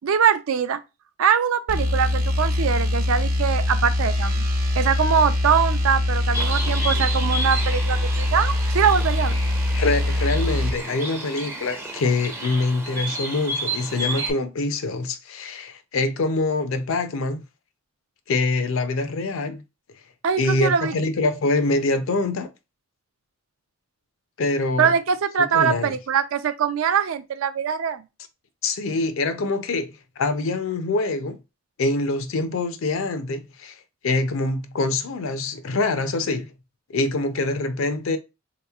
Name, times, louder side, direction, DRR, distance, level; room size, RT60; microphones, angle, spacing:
voice 1, 0.0-0.8 1.2-4.4 4.8-9.4 20.2-20.9 24.8-28.0, right 7 dB, 70° right, 0.4 m, -22 dB
sound 1, 1.7-10.8, left 1 dB, 40° right, 0.7 m, -23 dB
Bird, 6.3-14.3, right 2 dB, 10° right, 0.4 m, -32 dB
voice 2, 9.7-17.4 18.3-19.6 20.4-22.5 24.4-24.9 25.5-26.0 28.6-31.4 31.8-36.5 36.9-38.2, left 3 dB, 65° left, 0.5 m, -25 dB
3.6 x 2.9 x 2.3 m
head